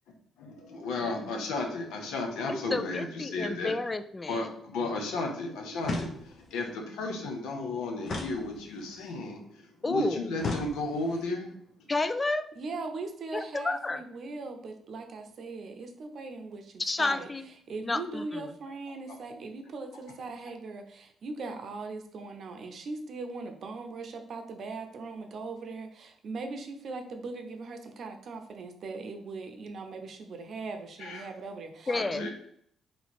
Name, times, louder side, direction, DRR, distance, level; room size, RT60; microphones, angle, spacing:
voice 1, 0.4-3.7 4.3-11.5 31.0-31.2 31.9-32.3, left 2 dB, 90° left, 3 dB, 0.8 m, -34 dB
voice 2, 2.5-4.5 9.8-10.3 11.9-12.5 13.3-14.0 16.8-17.5 17.8-18.5 31.9-32.3, left 2 dB, 25° left, 10 dB, 0.3 m, -31 dB
sound 1, 5.8-6.6 8.0-9.0 10.4-11.2, left 3 dB, 55° left, 0.7 m, -36 dB
voice 3, 12.6-17.3 17.7-32.3, right 3 dB, 60° right, 6 dB, 0.6 m, -40 dB
3.3 x 3.0 x 4.2 m, 0.66 s
cardioid pair, 90°, 0 cm